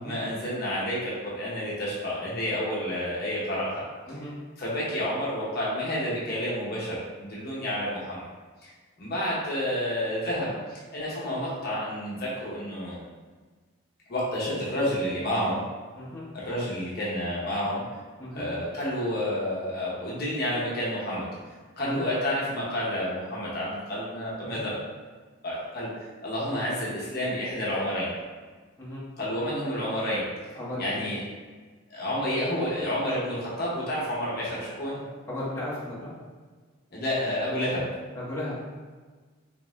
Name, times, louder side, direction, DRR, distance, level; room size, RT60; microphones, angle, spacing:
voice 1, 0.0-3.8 4.6-8.2 9.0-13.0 14.1-15.6 16.3-17.8 18.3-21.3 21.8-24.8 25.4-25.9 26.2-28.1 29.2-30.2 30.8-31.2 31.9-35.0 36.9-37.9, equal, 45° left, -7 dB, 0.8 m, -30 dB
voice 2, 30.5-31.0 35.3-36.1 38.1-38.7, left 1 dB, 15° left, -10 dB, 0.8 m, -35 dB
3.5 x 2.6 x 3.1 m, 1.4 s
head